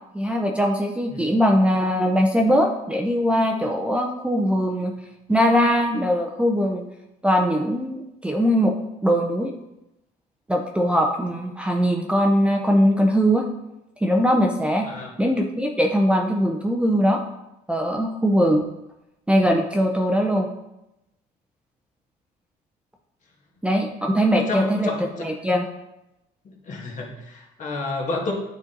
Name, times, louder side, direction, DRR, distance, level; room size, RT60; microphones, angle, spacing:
voice 1, 0.1-4.9 5.3-6.8 7.2-8.8 9.0-9.5 10.5-13.5 14.0-14.9 15.2-17.2 17.7-18.6 19.3-20.5 23.6-24.9 25.2-25.7, equal, 5° right, 1 dB, 0.6 m, -21 dB
voice 2, 24.4-25.3 26.7-28.3, left 3 dB, 50° left, -1 dB, 1.8 m, -30 dB
8.9 x 4.3 x 3.9 m, 0.90 s
cardioid pair, 110°, 17 cm